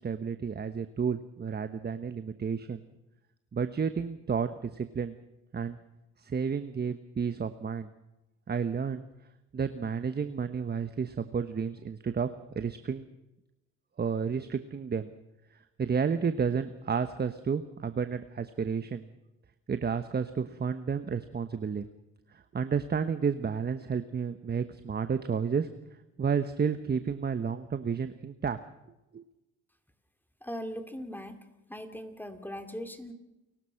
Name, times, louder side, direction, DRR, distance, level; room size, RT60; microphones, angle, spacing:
voice 1, 0.0-2.8 3.5-5.2 5.5-5.8 6.2-7.9 8.5-9.0 9.5-12.3 12.5-13.1 14.0-15.1 15.8-19.0 19.7-21.9 22.3-25.7 26.2-28.6 29.1-29.2, right 6 dB, 35° right, 10 dB, 1.1 m, -31 dB
voice 2, 30.4-31.4 31.7-33.1, equal, 5° left, 7 dB, 2.6 m, -39 dB
29.5 x 16.5 x 5.9 m, 0.97 s
cardioid pair, 90°, 30 cm